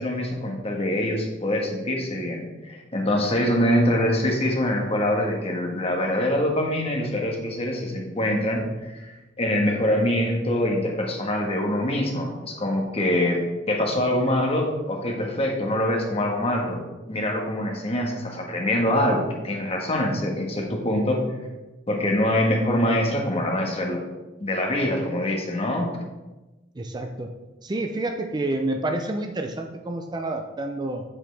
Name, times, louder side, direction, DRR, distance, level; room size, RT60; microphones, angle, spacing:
voice 1, 0.0-13.4 13.7-16.8 17.1-21.4 21.9-24.0 24.4-25.9, left 1 dB, 35° left, 1 dB, 1.4 m, -24 dB
voice 2, 26.8-27.3 27.6-31.0, right 2 dB, 25° right, 5 dB, 0.5 m, -29 dB
7.7 x 7.2 x 3.3 m, 1.1 s
head